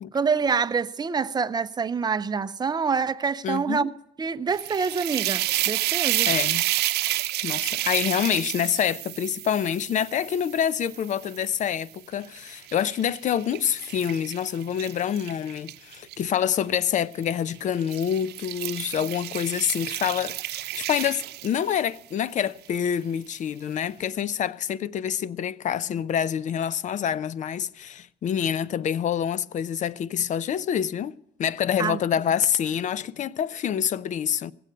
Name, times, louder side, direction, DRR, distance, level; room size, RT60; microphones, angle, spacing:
voice 1, 0.1-3.9 4.2-6.3 31.8-32.0, right 5 dB, 25° right, 0.6 m, -26 dB
voice 2, 3.4-3.9 6.3-6.7 7.4-31.1 31.4-34.5, left 9 dB, 45° left, 0.5 m, -27 dB
sound 1, 4.5-11.7 12.2-16.2 17.1-17.4 17.8-22.0, right 15 dB, 75° right, 0.7 m, -30 dB
17.0 x 7.7 x 8.9 m
cardioid pair, 110°, 17 cm